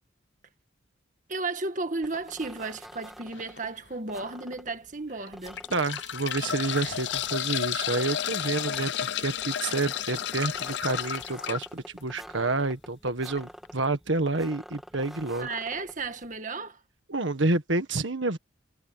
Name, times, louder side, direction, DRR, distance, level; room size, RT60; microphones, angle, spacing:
voice 1, 1.3-5.6 15.4-16.8, right 3 dB, 40° right, 1.8 m, -34 dB
sound 1, 2.0-16.4, equal, ahead, 1.8 m, -48 dB
sound 2, 3.3-3.6 4.2-4.3 5.3-11.7 13.3-13.4 13.6-13.7, left 10 dB, 65° left, 0.6 m, -32 dB
voice 2, 5.7-15.5 17.1-18.4, right 2 dB, 75° right, 1.7 m, -29 dB
head